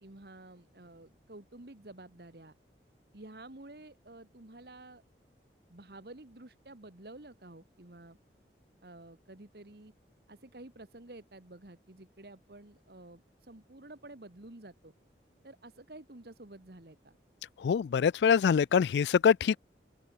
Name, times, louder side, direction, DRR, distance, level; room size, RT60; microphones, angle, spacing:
voice 1, 0.0-2.5 3.1-5.0 5.7-8.2 8.8-9.9 10.3-14.9 15.4-17.2, right 2 dB, 65° right, 1.6 m, -51 dB
voice 2, 17.6-19.6, left 7 dB, 80° left, 0.3 m, -24 dB
open air
head